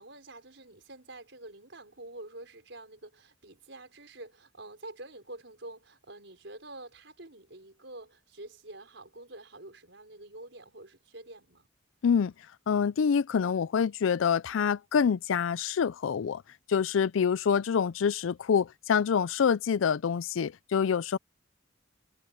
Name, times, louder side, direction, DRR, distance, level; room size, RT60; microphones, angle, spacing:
voice 1, 0.0-11.7, right 2 dB, 65° right, 4.9 m, -47 dB
voice 2, 12.7-16.4 16.7-21.2, left 7 dB, 85° left, 0.4 m, -26 dB
head